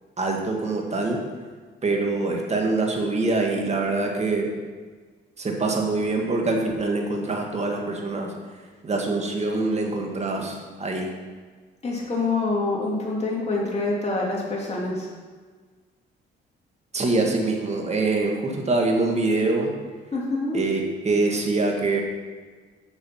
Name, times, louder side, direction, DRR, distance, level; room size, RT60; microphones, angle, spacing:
voice 1, 0.2-1.2 1.8-4.5 5.4-8.3 8.8-11.1 16.9-19.7 20.5-22.0, right 3 dB, 35° right, 1 dB, 1.8 m, -24 dB
voice 2, 11.8-15.1 20.1-20.6, left 3 dB, 35° left, -4 dB, 2.9 m, -26 dB
7.3 x 6.7 x 5.8 m, 1.5 s
cardioid pair, 90°, 20 cm